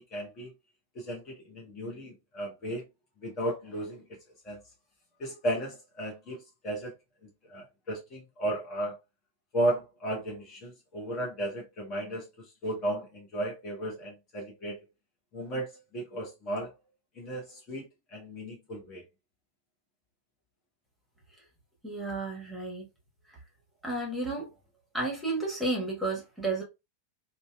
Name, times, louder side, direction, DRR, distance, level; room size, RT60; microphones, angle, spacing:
voice 1, 0.1-0.5 0.9-2.8 3.2-4.0 4.4-4.6 5.2-6.9 7.5-9.0 9.5-14.8 15.3-16.7 17.1-19.0, right 1 dB, 30° left, 0.8 m, -34 dB
voice 2, 21.8-22.9 23.8-24.5 24.9-26.6, right 2 dB, 5° right, 1.2 m, -32 dB
2.7 x 2.1 x 2.2 m
figure-of-eight pair, 90°, 0 cm